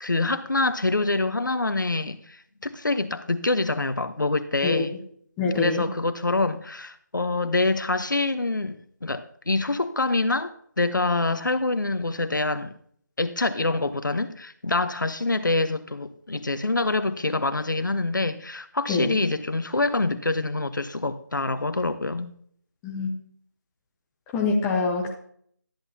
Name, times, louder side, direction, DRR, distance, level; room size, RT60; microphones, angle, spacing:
voice 1, 0.0-5.0 5.5-12.7 13.2-22.3, left 2 dB, 85° left, 1.0 m, -26 dB
voice 2, 5.4-5.8 18.9-19.2 22.8-23.1 24.3-25.1, left 4 dB, 5° left, 0.6 m, -25 dB
13.0 x 10.5 x 2.8 m
figure-of-eight pair, 165°, 10 cm